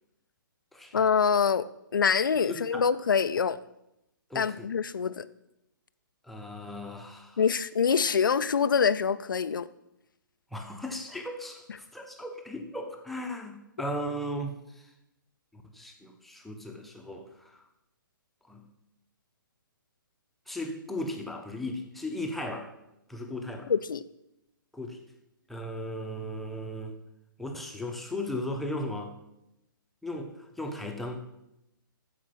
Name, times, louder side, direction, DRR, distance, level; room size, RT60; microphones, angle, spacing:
voice 1, 0.9-1.7 1.9-3.6 4.3-5.3 7.4-9.7 23.7-24.0, left 6 dB, 65° left, 0.6 m, -25 dB
voice 2, 2.5-2.9 4.3-4.7 6.2-7.4 10.5-14.5 15.5-17.6 18.5-18.6 20.5-22.7 23.1-23.7 24.7-25.0 25.5-27.0 27.4-29.1 30.0-31.2, left 1 dB, ahead, 1.1 m, -36 dB
14.0 x 5.2 x 6.0 m
figure-of-eight pair, 130°, 12 cm